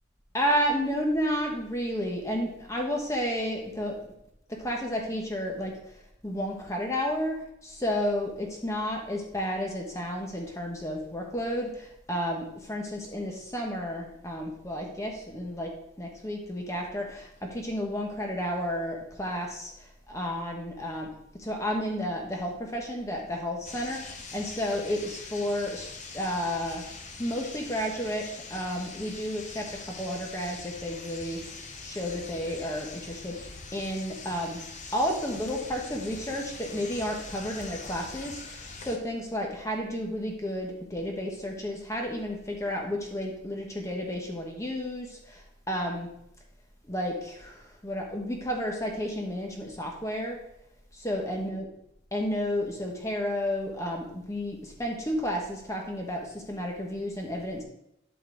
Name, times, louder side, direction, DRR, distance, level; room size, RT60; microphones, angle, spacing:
voice 1, 0.3-4.0 4.5-5.7 6.2-15.7 16.0-21.1 21.3-26.8 27.2-31.6 31.8-34.6 34.9-46.1 46.9-50.4 50.9-51.7 52.1-57.6, equal, 15° left, 0 dB, 1.3 m, -32 dB
sound 1, 23.6-39.0, left 4 dB, 35° left, 0.8 m, -43 dB
11.5 x 4.2 x 3.9 m, 0.79 s
head